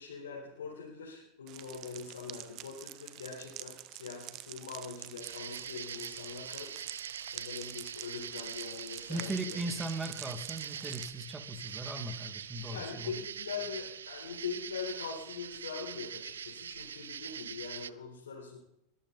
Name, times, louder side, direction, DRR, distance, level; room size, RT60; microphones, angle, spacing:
voice 1, 0.0-6.7 7.3-9.6 12.7-18.6, left 6 dB, 90° left, -4 dB, 4.6 m, -42 dB
sound 1, 1.5-11.1, right 16 dB, 50° right, 1.0 m, -47 dB
sound 2, 5.2-17.9, right 8 dB, 90° right, 0.5 m, -43 dB
voice 2, 9.1-13.1, right 1 dB, 15° right, 7 dB, 2.5 m, -38 dB
22.0 x 13.5 x 4.3 m, 0.81 s
hypercardioid pair, 100°, 0 cm